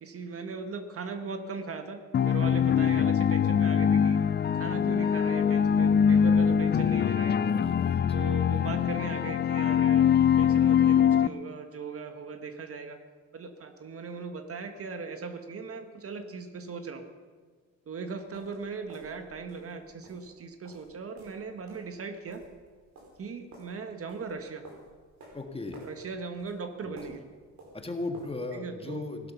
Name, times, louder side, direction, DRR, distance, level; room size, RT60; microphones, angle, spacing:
voice 1, 0.0-4.2 4.5-7.4 8.1-10.1 10.4-13.0 13.3-17.1 17.9-22.4 23.2-24.6 25.8-27.3 28.5-29.0, right 4 dB, 50° right, 7 dB, 1.4 m, -39 dB
sound 1, 2.1-11.3, left 8 dB, 35° left, 0.5 m, -23 dB
voice 2, 7.4-8.2 8.5-8.7 25.3-25.8 26.8-27.2 27.7-29.3, left 2 dB, 20° left, 4 dB, 1.7 m, -37 dB
sound 2, 18.2-28.5, right 1 dB, 65° right, 5.0 m, -53 dB
17.0 x 11.5 x 5.5 m, 1.6 s
cardioid pair, 90°, 30 cm